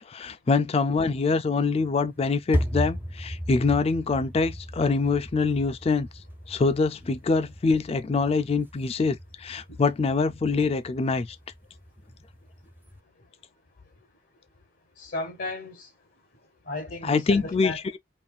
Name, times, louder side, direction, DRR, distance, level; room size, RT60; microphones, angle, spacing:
voice 1, 0.1-6.1 6.5-11.4 17.0-18.0, left 4 dB, 30° left, 0.3 m, -24 dB
sound 1, 1.6-13.0, equal, 10° right, 0.6 m, -36 dB
voice 2, 15.0-15.9 16.7-17.8, left 2 dB, 65° left, 1.1 m, -34 dB
5.4 x 2.6 x 2.3 m
head